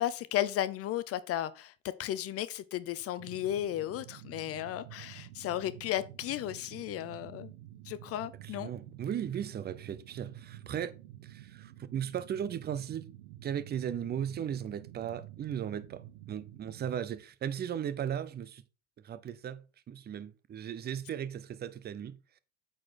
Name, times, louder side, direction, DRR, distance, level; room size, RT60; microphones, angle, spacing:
voice 1, 0.0-1.7 2.0-7.5 7.9-8.7, left 12 dB, 40° left, 0.6 m, -34 dB
sound 1, 3.2-17.0, right 13 dB, 70° right, 1.0 m, -50 dB
voice 2, 8.4-10.9 11.2-13.1 13.4-18.6 19.0-22.2, right 9 dB, 25° right, 0.7 m, -37 dB
8.5 x 4.5 x 4.6 m
hypercardioid pair, 90°, 36 cm